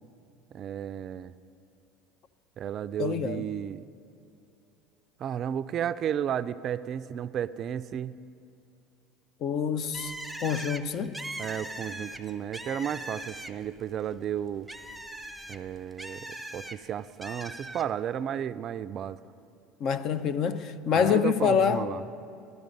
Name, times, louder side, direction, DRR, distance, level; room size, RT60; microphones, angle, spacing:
voice 1, 0.5-1.3 2.6-3.8 5.2-8.2 11.4-14.7 15.5-16.3 16.5-19.2 20.9-22.0, right 9 dB, 45° right, 0.4 m, -33 dB
voice 2, 3.0-3.4 9.4-10.1 10.4-11.2 19.8-21.9, left 7 dB, 55° left, 0.6 m, -26 dB
Bird, 9.9-13.8 14.1-16.8 17.2-17.9, right 1 dB, 5° right, 0.7 m, -40 dB
14.0 x 12.5 x 5.3 m
supercardioid pair, 95°, 0 cm